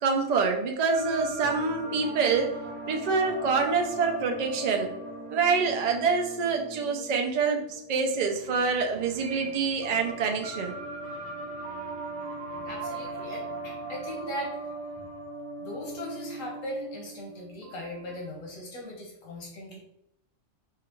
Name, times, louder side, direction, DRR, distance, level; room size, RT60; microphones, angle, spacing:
voice 1, 0.0-2.5 2.9-4.9 5.3-10.7, right 5 dB, 55° right, 2 dB, 0.4 m, -26 dB
sound 1, 0.9-18.2, right 2 dB, 75° right, 1.1 m, -39 dB
voice 2, 12.6-14.6 15.6-19.8, left 1 dB, 85° left, -2 dB, 1.3 m, -39 dB
4.6 x 2.4 x 3.0 m, 0.79 s
omnidirectional pair, 1.3 m